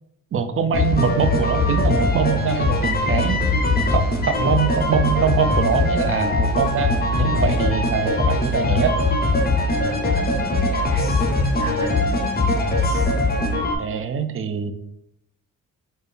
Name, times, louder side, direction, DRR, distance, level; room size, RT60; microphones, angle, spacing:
voice 1, 0.3-3.4 3.9-9.0 13.8-14.7, right 6 dB, 40° right, 9 dB, 0.4 m, -23 dB
sound 1, 0.7-13.8, left 2 dB, 30° left, 0.7 m, -21 dB
voice 2, 9.4-12.0, right 1 dB, 70° right, -10 dB, 1.3 m, -33 dB
4.3 x 2.2 x 3.3 m, 0.82 s
cardioid pair, 80°, 33 cm